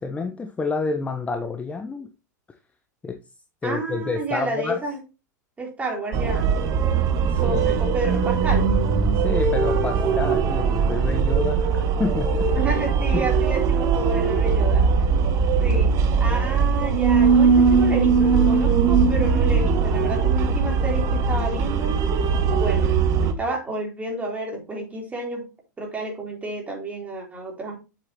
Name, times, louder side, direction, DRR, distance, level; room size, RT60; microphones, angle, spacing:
voice 1, 0.0-2.1 3.0-3.2 3.6-4.8 7.3-7.8 9.1-12.6 13.1-13.3, left 4 dB, 15° left, 6 dB, 0.8 m, -29 dB
voice 2, 3.6-5.0 5.6-6.5 7.4-8.7 12.5-14.8 15.6-22.0 22.6-22.9 23.2-25.5 25.8-27.8, right 2 dB, 15° right, 0 dB, 3.8 m, -30 dB
sound 1, 6.1-23.3, right 5 dB, 35° right, 1.1 m, -20 dB
7.7 x 7.4 x 3.0 m, 0.28 s
figure-of-eight pair, 90°, 10 cm